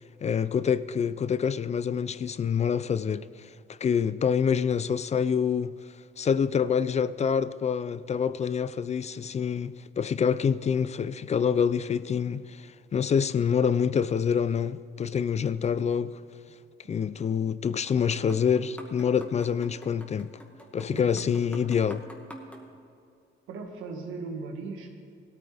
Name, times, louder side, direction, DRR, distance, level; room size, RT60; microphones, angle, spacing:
voice 1, 0.2-3.5 3.8-5.7 6.2-16.2 16.9-20.3 20.7-22.0, left 7 dB, 35° left, 0.4 m, -26 dB
sound 1, 17.9-22.7, equal, 5° left, 2.0 m, -47 dB
voice 2, 20.9-21.4 23.5-24.9, right 4 dB, 85° right, 1.9 m, -38 dB
17.5 x 13.5 x 3.5 m
cardioid pair, 90°, 20 cm